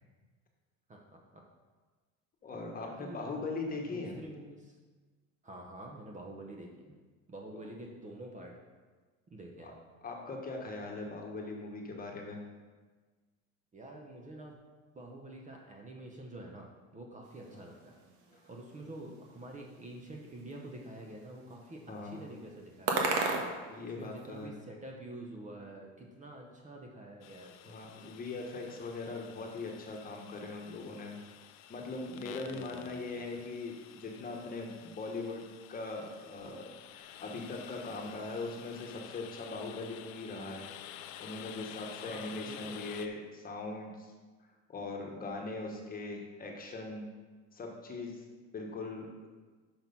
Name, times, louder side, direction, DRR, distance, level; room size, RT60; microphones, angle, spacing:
voice 1, 0.9-1.4 2.8-3.5 3.9-4.8 5.4-6.9 7.3-8.6 9.3-9.7 13.7-14.6 14.9-18.0 18.5-23.2 23.8-27.8 28.7-28.8 32.1-33.2 42.0-42.8, right 1 dB, 20° right, 0 dB, 0.9 m, -48 dB
voice 2, 2.4-4.2 9.6-9.7 10.0-12.4 17.5-17.6 21.9-22.2 23.7-24.5 27.6-31.2 31.7-35.4 35.7-40.7 41.2-44.1 44.7-47.0 47.5-48.2 48.5-49.1, left 3 dB, 25° left, 1 dB, 1.4 m, -40 dB
sound 1, 17.2-24.5, right 3 dB, 75° right, 1.5 m, -39 dB
sound 2, 27.2-43.1, left 11 dB, 70° left, 0.6 m, -51 dB
6.4 x 6.1 x 5.4 m, 1.4 s
cardioid pair, 135°, 34 cm